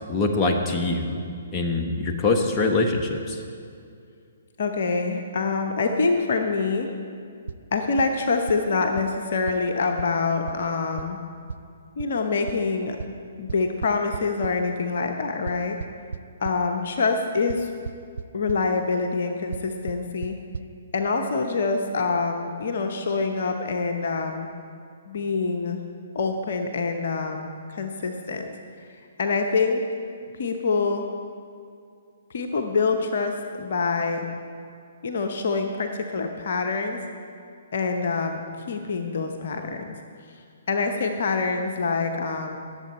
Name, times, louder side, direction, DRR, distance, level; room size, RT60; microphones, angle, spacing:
voice 1, 0.1-1.2 1.5-3.4, left 3 dB, 20° left, 2 dB, 1.2 m, -23 dB
voice 2, 4.6-6.9 7.7-11.2 12.0-13.0 13.4-15.8 16.4-17.7 18.3-20.4 20.9-24.5 25.1-25.8 26.1-28.5 29.2-29.8 30.4-31.0 32.3-34.3 35.0-37.0 37.7-38.4 38.7-39.9 40.7-42.6, left 4 dB, 55° left, 4 dB, 0.9 m, -25 dB
sound 1, 7.5-7.6 8.0-8.1 8.5-8.6 9.0-9.1 9.5-9.6 10.0-10.1 10.5-10.6 11.0-11.1 11.5-11.6 12.0-12.1 12.5-12.6 13.0-13.1 13.5-14.5 15.5-16.6 17.5-17.6 17.9-18.2 18.5-18.6 19.5-19.6 19.9-20.0 20.2-20.3 20.5-20.6, right 6 dB, 70° right, 0.4 m, -32 dB
19.0 x 7.6 x 4.2 m, 2.4 s
figure-of-eight pair, 130°, 0 cm